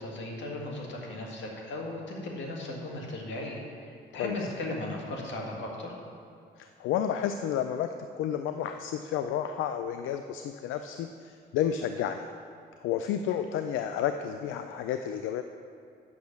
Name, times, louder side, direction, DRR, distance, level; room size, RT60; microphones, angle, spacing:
voice 1, 0.0-5.9, left 2 dB, 70° left, -1 dB, 2.0 m, -37 dB
voice 2, 6.6-12.3 12.8-15.4, left 9 dB, 85° left, 8 dB, 0.4 m, -31 dB
8.4 x 6.1 x 7.0 m, 2.3 s
cardioid pair, 90°, 20 cm